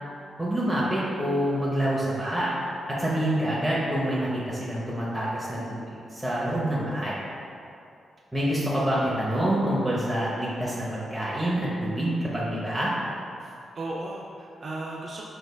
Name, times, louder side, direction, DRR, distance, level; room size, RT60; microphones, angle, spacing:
voice 1, 0.4-2.5 2.9-7.2 8.3-12.9, right 1 dB, 5° right, -8 dB, 0.7 m, -27 dB
voice 2, 13.4-15.2, right 2 dB, 50° right, -3 dB, 0.4 m, -36 dB
4.1 x 3.2 x 2.2 m, 2.6 s
cardioid pair, 60°, 0 cm